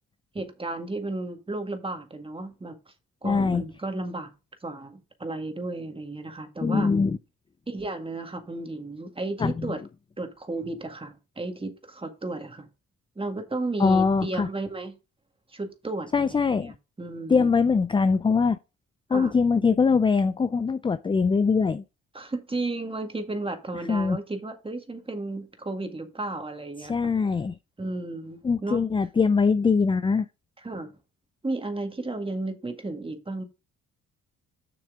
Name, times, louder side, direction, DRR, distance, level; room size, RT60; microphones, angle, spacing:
voice 1, 0.3-2.7 3.2-4.3 4.6-6.9 7.7-9.8 10.2-12.7 13.2-15.0 15.5-17.5 19.1-19.3 22.1-27.1 27.8-28.8 30.6-31.0 31.4-33.4, right 2 dB, 20° right, 1.8 m, -33 dB
voice 2, 3.2-3.6 6.6-7.2 9.4-9.7 13.8-14.5 16.1-16.7 17.3-18.6 19.1-21.8 23.9-24.2 26.9-27.5 28.4-30.3, left 5 dB, 15° left, 0.4 m, -22 dB
6.9 x 6.4 x 3.7 m
cardioid pair, 90°, 30 cm